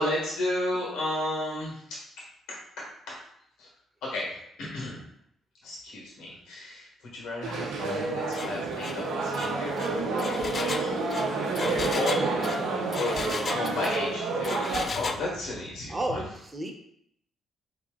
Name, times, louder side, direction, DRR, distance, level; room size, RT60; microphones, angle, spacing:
voice 1, 0.0-2.0 2.8-3.1 3.6-3.7 4.0-5.0 5.6-12.5 13.0-16.2, left 1 dB, 85° left, -3 dB, 1.3 m, -33 dB
sound 1, 7.4-14.9, right 3 dB, 90° right, 0.7 m, -29 dB
Engine, 8.3-8.5 8.8-9.0 9.3-14.1 14.4-15.2, left 4 dB, 40° left, 0.3 m, -35 dB
voice 2, 15.9-16.7, right 1 dB, 25° right, 2 dB, 0.8 m, -32 dB
4.0 x 2.9 x 3.7 m, 0.72 s
cardioid pair, 90°, 0 cm